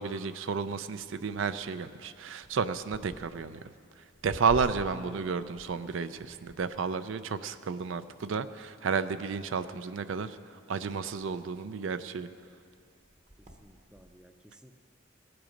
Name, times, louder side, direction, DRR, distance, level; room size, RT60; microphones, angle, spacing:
voice 1, 0.0-3.6 4.2-10.4 10.7-12.3, right 5 dB, 75° right, 13 dB, 0.4 m, -32 dB
sound 1, 1.0-7.8 8.1-8.9 9.7-10.1 10.6-10.7 11.0-14.1, equal, 35° right, 0.9 m, -49 dB
voice 2, 4.8-5.5 13.4-14.8, right 1 dB, 5° right, 6 dB, 0.5 m, -51 dB
19.0 x 7.9 x 5.2 m, 2.3 s
head